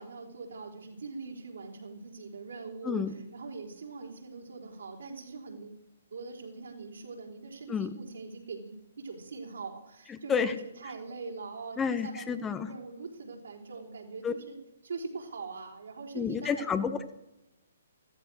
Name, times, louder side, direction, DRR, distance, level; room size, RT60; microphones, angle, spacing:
voice 1, 0.0-5.8 6.1-14.6 14.8-16.8, right 4 dB, 70° right, 1 dB, 4.3 m, -42 dB
voice 2, 10.1-10.5 11.8-12.7 14.2-14.3 16.1-17.1, left 6 dB, 15° left, 11 dB, 1.0 m, -30 dB
15.0 x 14.0 x 6.4 m, 0.90 s
figure-of-eight pair, 130°, 0 cm